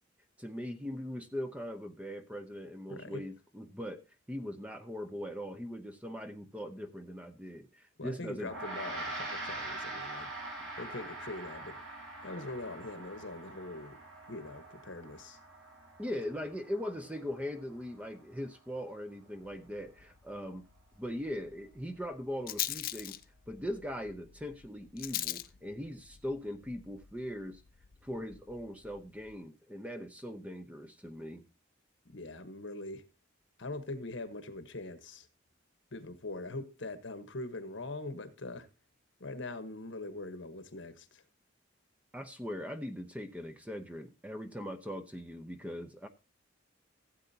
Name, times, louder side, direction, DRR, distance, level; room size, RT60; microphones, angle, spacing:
voice 1, 0.4-4.0 4.3-8.5 16.0-20.6 21.0-23.2 23.5-27.6 28.0-31.4 42.1-46.1, equal, 5° right, 0.7 m, -40 dB
voice 2, 2.9-3.3 8.0-10.3 10.8-11.8 12.2-14.0 14.3-15.4 32.1-33.0 33.6-35.3 35.9-38.7 39.2-41.2, left 2 dB, 70° left, 1.2 m, -42 dB
Gong, 8.4-18.0, right 2 dB, 85° right, 5.4 m, -44 dB
Rattle, 19.4-29.4, left 14 dB, 45° left, 0.4 m, -43 dB
15.5 x 8.0 x 2.8 m
head